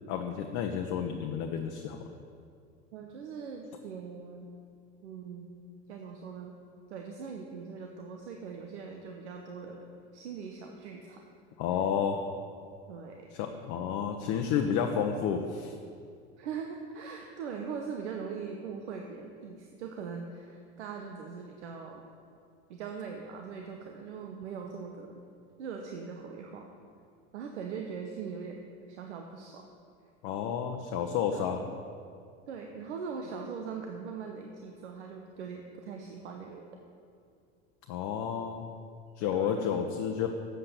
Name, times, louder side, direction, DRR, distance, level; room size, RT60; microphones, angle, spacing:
voice 1, 0.1-2.0 11.6-12.2 13.3-15.7 30.2-31.6 37.9-38.6 39.2-40.3, left 7 dB, 55° left, 3 dB, 0.8 m, -31 dB
voice 2, 2.9-4.5 5.0-5.6 5.9-6.6 6.9-9.9 10.1-11.2 12.9-13.3 16.4-22.1 22.7-25.2 25.6-26.7 27.3-28.6 28.9-29.7 31.3-31.7 32.5-36.7 39.3-39.7, right 6 dB, 80° right, 2 dB, 0.9 m, -41 dB
7.8 x 7.6 x 6.8 m, 2.4 s
hypercardioid pair, 80°, 34 cm